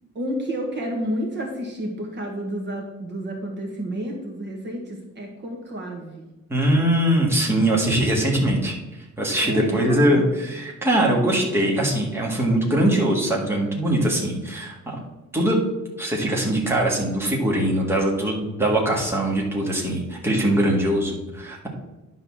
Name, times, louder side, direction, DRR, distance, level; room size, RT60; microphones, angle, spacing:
voice 1, 0.1-6.2 9.4-10.3, equal, 35° right, 0 dB, 1.5 m, -30 dB
voice 2, 6.5-8.7 9.2-15.0 15.3-15.6 16.0-21.7, right 1 dB, 10° right, -3 dB, 1.7 m, -22 dB
10.0 x 4.0 x 7.1 m, 1.0 s
cardioid pair, 180°, 31 cm